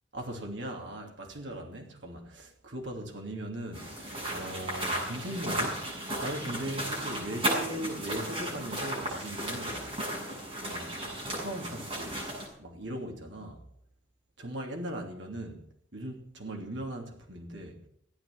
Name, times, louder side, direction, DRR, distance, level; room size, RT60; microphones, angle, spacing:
voice 1, 0.1-5.9 6.2-9.9 10.6-12.2 12.6-13.6 14.4-15.6 15.9-17.8, right 1 dB, 75° right, 2.9 m, -39 dB
sound 1, 3.7-12.5, right 1 dB, 30° right, 7.5 m, -34 dB
16.5 x 9.4 x 7.8 m
head